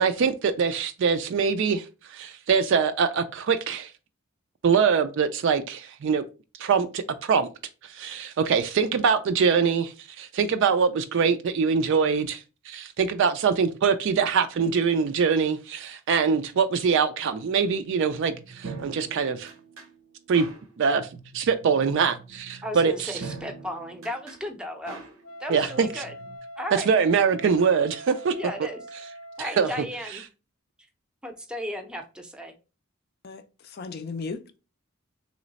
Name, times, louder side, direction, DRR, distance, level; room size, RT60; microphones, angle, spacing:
voice 1, 0.0-3.9 4.6-6.2 6.6-7.5 7.8-19.5 20.3-20.5 20.8-21.1 21.3-23.2 25.5-26.0 26.7-28.3 29.6-29.7, right 6 dB, 60° right, 0.3 m, -23 dB
sound 1, 18.3-26.4, right 4 dB, 90° right, 0.8 m, -44 dB
voice 2, 22.6-25.0 25.4-26.1 26.6-26.9 28.3-28.8 29.4-30.2 31.2-32.5, equal, 5° right, 0.6 m, -35 dB
Wind instrument woodwind instrument, 25.2-29.9, right 1 dB, 90° left, 0.6 m, -43 dB
voice 3, 33.2-34.6, left 4 dB, 50° left, 0.4 m, -36 dB
3.1 x 3.1 x 3.9 m
head